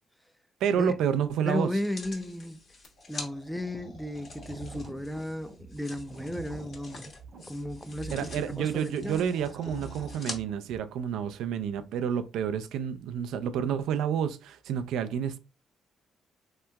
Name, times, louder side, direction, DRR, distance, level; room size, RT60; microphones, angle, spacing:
voice 1, 0.6-1.7 8.1-15.4, right 8 dB, 85° right, 0.3 m, -29 dB
voice 2, 1.5-2.6 3.1-7.1 7.5-9.2 9.7-9.8, left 1 dB, 5° left, 0.4 m, -34 dB
sound 1, 1.8-3.3 4.1-10.4 11.1-11.2, left 3 dB, 50° left, 1.0 m, -46 dB
sound 2, 2.8-4.8 6.1-7.3 8.8-10.2, left 2 dB, 75° left, 1.1 m, -53 dB
sound 3, 3.6-10.8, right 4 dB, 55° right, 0.7 m, -46 dB
3.4 x 2.8 x 2.2 m
cardioid pair, 90°, 0 cm